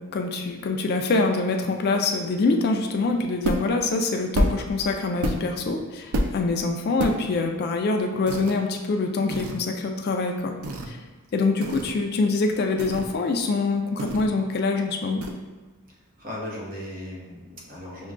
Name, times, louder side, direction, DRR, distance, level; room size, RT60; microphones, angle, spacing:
voice 1, 0.0-10.5 10.9-11.0 11.3-15.2, left 3 dB, 50° left, 4 dB, 0.3 m, -25 dB
sound 1, 3.4-3.8 4.3-4.7 5.2-5.6 6.1-6.4 7.0-7.2 8.3-8.6 9.3-9.6 10.6-10.9 11.6-12.0 12.8-13.2 14.0-14.4 15.2-15.3, right 1 dB, 80° right, 0.4 m, -27 dB
voice 2, 15.9-18.1, left 1 dB, 40° right, -4 dB, 0.9 m, -37 dB
6.0 x 2.2 x 2.4 m, 1.2 s
head